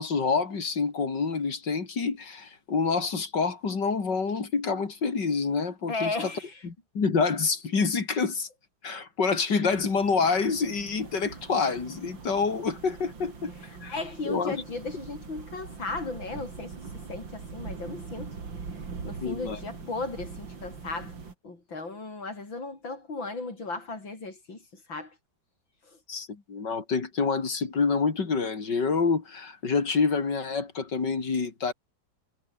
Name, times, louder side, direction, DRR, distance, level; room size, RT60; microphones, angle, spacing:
voice 1, 0.0-6.3 6.6-8.5 8.8-13.5 13.8-13.9 14.3-14.6 19.2-19.6 26.1-31.7, left 5 dB, 65° left, 3.7 m, -27 dB
voice 2, 5.9-6.6 13.6-18.4 19.0-21.1 21.4-25.2 25.9-26.0, left 3 dB, 80° left, 6.4 m, -36 dB
sound 1, 9.7-21.3, right 5 dB, 75° right, 3.8 m, -42 dB
omnidirectional pair, 2.1 m